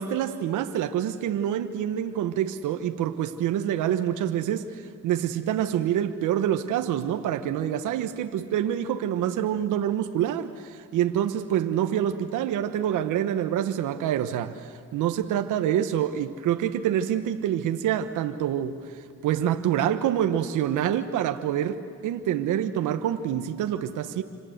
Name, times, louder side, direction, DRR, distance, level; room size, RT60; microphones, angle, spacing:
voice 1, 0.0-24.2, right 10 dB, 85° right, 1.2 m, -26 dB
28.0 x 26.5 x 8.0 m
cardioid pair, 90°, 30 cm